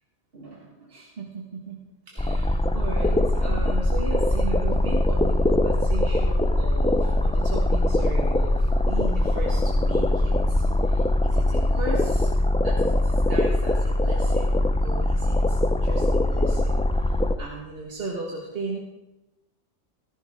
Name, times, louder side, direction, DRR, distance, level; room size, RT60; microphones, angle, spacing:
voice 1, 0.3-12.3 12.6-18.8, right 3 dB, 50° right, -2 dB, 1.9 m, -37 dB
sound 1, 2.2-17.4, left 1 dB, 10° left, 0.3 m, -22 dB
15.5 x 14.5 x 3.7 m, 0.97 s
omnidirectional pair, 1.2 m